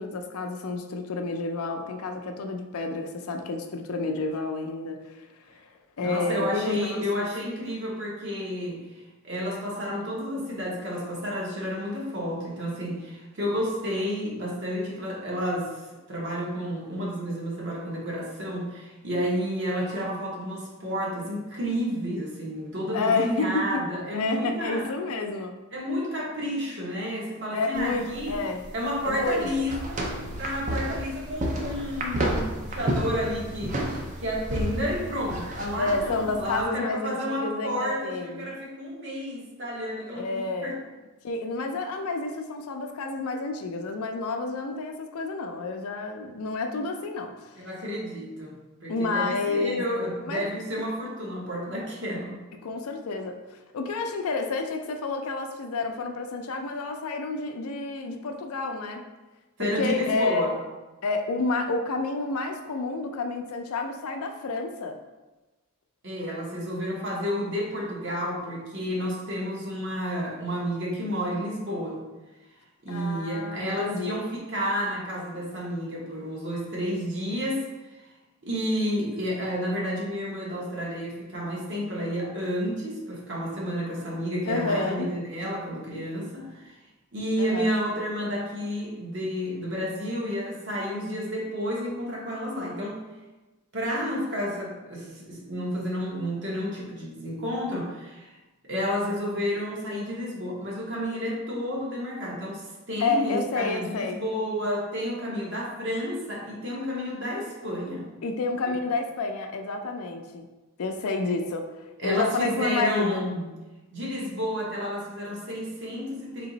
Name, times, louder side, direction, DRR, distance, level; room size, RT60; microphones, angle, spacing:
voice 1, 0.0-5.2 5.5-5.7 6.0-7.3 22.9-23.7 24.1-25.6 27.5-28.6 29.0-29.6 35.8-38.5 40.1-40.8 41.2-47.6 48.9-49.8 50.3-50.5 52.6-53.4 53.7-59.0 59.6-60.5 61.0-65.0 72.9-74.2 84.5-85.1 87.4-87.7 103.0-104.2 108.2-110.5 110.8-111.7 112.0-113.3, left 3 dB, 80° left, 4 dB, 0.5 m, -29 dB
voice 2, 6.0-15.8 16.1-24.9 25.7-28.4 28.7-29.9 30.4-33.8 34.2-40.8 47.6-48.5 48.8-52.4 59.6-60.6 66.0-72.0 72.8-77.7 78.4-86.8 87.1-93.0 93.7-98.3 98.7-108.1 108.7-108.8 112.0-113.5 113.9-116.5, equal, 55° right, -4 dB, 1.1 m, -31 dB
sound 1, 27.7-36.6, right 1 dB, 35° right, 0.5 m, -31 dB
3.4 x 3.0 x 3.9 m, 1.1 s
head